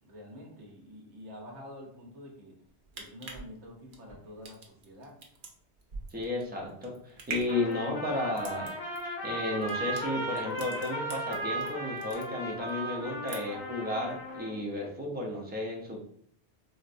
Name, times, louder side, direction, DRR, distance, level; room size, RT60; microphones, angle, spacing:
voice 1, 0.0-2.5 2.9-5.1, left 1 dB, 85° right, -1 dB, 1.1 m, -47 dB
sound 1, 2.7-11.7 12.0-12.7 13.0-13.7 14.1-14.2, right 4 dB, 55° right, 0.7 m, -44 dB
voice 2, 6.1-8.7 9.2-16.0, left 2 dB, 15° right, -1 dB, 0.4 m, -33 dB
Trumpet, 7.5-14.6, right 1 dB, 55° left, 1.3 m, -36 dB
4.4 x 2.0 x 2.5 m, 0.66 s
omnidirectional pair, 1.1 m